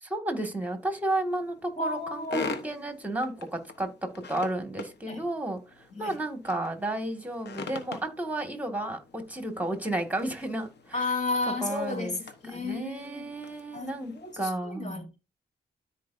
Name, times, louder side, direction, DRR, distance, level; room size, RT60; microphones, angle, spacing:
voice 1, 0.0-11.1 11.6-12.2 12.4-15.1, right 1 dB, 10° right, 1.8 m, -32 dB
sound 1, 0.6-14.4, left 4 dB, 70° left, 1.2 m, -44 dB
voice 2, 1.8-2.5 5.0-5.2 5.9-6.2 10.9-12.2 12.4-13.3 13.7-15.2, left 3 dB, 40° left, 3.5 m, -33 dB
13.0 x 4.6 x 2.6 m
cardioid pair, 80°, 18 cm